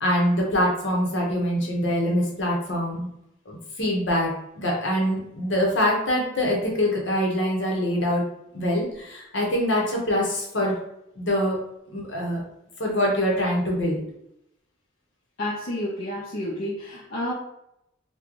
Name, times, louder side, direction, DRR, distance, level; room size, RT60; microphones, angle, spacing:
voice 1, 0.0-3.1 3.5-8.2 8.5-10.8 11.2-11.6 11.9-12.4 12.8-14.0, equal, 65° left, -1 dB, 1.0 m, -24 dB
voice 2, 15.4-17.3, left 1 dB, 45° left, -6 dB, 0.6 m, -30 dB
3.1 x 2.3 x 3.8 m, 0.80 s
head